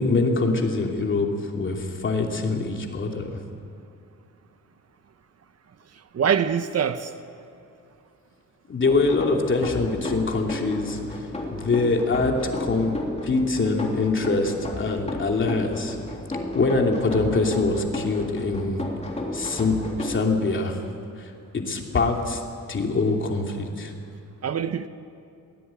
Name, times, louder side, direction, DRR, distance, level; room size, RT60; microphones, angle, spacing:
voice 1, 0.0-3.3 8.7-11.0 11.5-13.0 13.2-16.0 16.5-18.8 19.3-20.8 21.2-22.4 22.7-23.9, left 3 dB, 40° left, 2.9 m, -24 dB
voice 2, 5.9-7.1 24.4-24.9, right 8 dB, 50° right, 0.9 m, -24 dB
sound 1, 8.8-20.2, left 2 dB, 20° left, 3.1 m, -33 dB
22.0 x 18.0 x 9.0 m
wide cardioid pair, 145°, 31 cm